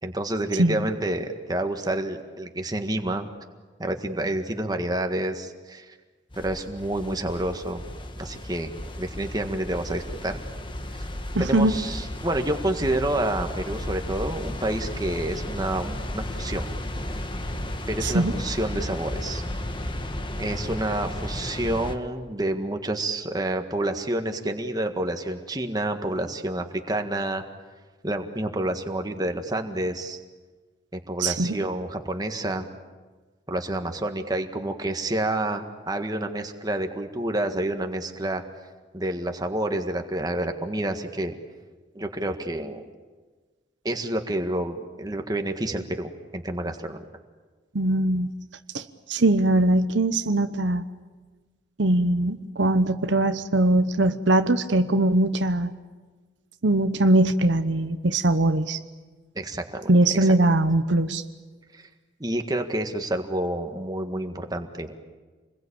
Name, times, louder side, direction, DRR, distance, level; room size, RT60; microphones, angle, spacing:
voice 1, 0.0-3.3 3.8-6.0 6.4-7.8 8.2-8.7 9.0-10.4 11.0-11.1 11.4-16.7 17.9-19.4 20.4-27.4 28.0-30.2 30.9-32.7 33.5-38.4 38.9-41.3 42.0-42.8 43.8-47.0 59.4-59.9 60.2-60.3 61.7-61.9 62.2-64.9, right 1 dB, 20° right, 5 dB, 1.7 m, -29 dB
sound 1, 6.3-22.0, left 1 dB, 25° left, 1.5 m, -34 dB
voice 2, 11.3-11.7 18.0-18.3 31.2-31.6 47.7-48.3 48.7-50.8 51.8-55.7 56.6-58.8 59.9-61.2, right 1 dB, 75° right, 10 dB, 1.0 m, -21 dB
27.5 x 21.5 x 8.8 m, 1.4 s
head